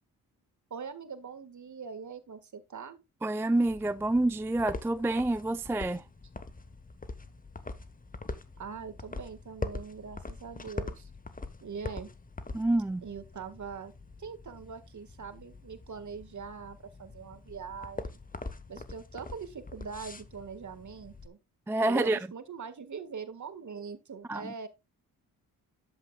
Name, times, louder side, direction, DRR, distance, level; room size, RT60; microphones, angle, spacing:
voice 1, 0.7-3.0 8.6-11.1 11.6-12.1 13.0-13.9 14.2-18.2 18.7-21.4 21.8-24.7, right 6 dB, 50° right, 1.7 m, -42 dB
voice 2, 3.2-6.0 12.5-13.0 21.7-22.2 24.3-24.5, right 2 dB, 5° right, 0.4 m, -28 dB
sound 1, 3.6-21.3, left 3 dB, 20° left, 1.2 m, -43 dB
11.5 x 7.5 x 2.3 m
supercardioid pair, 55°, 38 cm